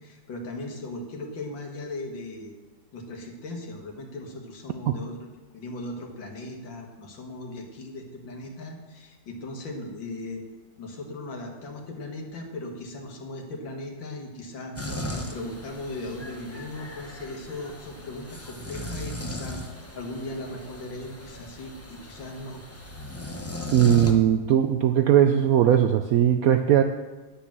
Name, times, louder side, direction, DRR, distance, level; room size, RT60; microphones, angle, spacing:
voice 1, 0.0-2.5 2.9-5.2 5.5-10.4 10.8-14.7 15.1-19.6 19.9-22.6, left 2 dB, 75° left, 2 dB, 2.3 m, -38 dB
sound 1, 14.8-24.1, left 1 dB, 20° left, 0.4 m, -37 dB
voice 2, 23.7-26.8, right 10 dB, 85° right, 7 dB, 0.7 m, -19 dB
9.5 x 6.9 x 7.4 m, 1.2 s
omnidirectional pair, 2.1 m